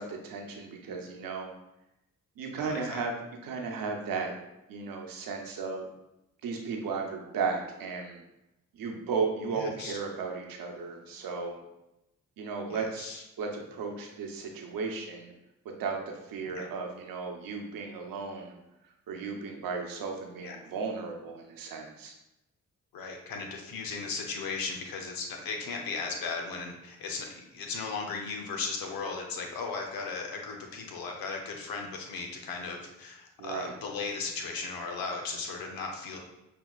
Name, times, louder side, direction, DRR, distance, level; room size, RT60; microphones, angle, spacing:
voice 1, 0.0-1.5 2.4-3.1 3.4-4.3 4.7-5.9 6.4-8.2 8.7-11.6 12.4-13.1 13.4-15.3 15.8-18.6 19.1-22.1 33.4-33.7, right 4 dB, 80° right, 2 dB, 0.8 m, -35 dB
voice 2, 2.6-3.0 9.6-10.0 12.7-13.2 16.5-16.7 20.4-20.6 22.9-36.2, left 4 dB, 85° left, 2 dB, 0.7 m, -36 dB
5.9 x 2.8 x 2.4 m, 0.90 s
supercardioid pair, 50°, 34 cm